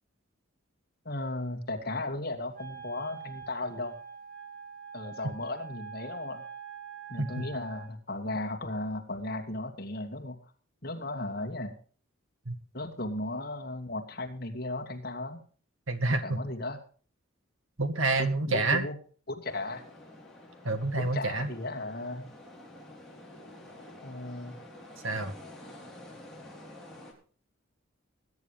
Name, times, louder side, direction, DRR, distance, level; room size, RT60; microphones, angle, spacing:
voice 1, 1.0-4.0 4.9-6.4 7.1-10.4 10.8-11.8 12.7-15.4 16.1-16.8 18.2-19.0 19.3-19.8 21.0-22.3 24.0-24.5, left 2 dB, 45° left, 3 dB, 2.4 m, -36 dB
Wind instrument woodwind instrument, 2.5-7.9, right 7 dB, 40° right, 2.8 m, -45 dB
voice 2, 15.9-16.4 17.8-18.9 20.6-21.5 25.0-25.3, right 2 dB, 75° right, 8 dB, 1.9 m, -28 dB
sound 1, 19.5-27.1, left 1 dB, ahead, 3.8 m, -49 dB
20.5 x 10.0 x 3.4 m, 0.42 s
head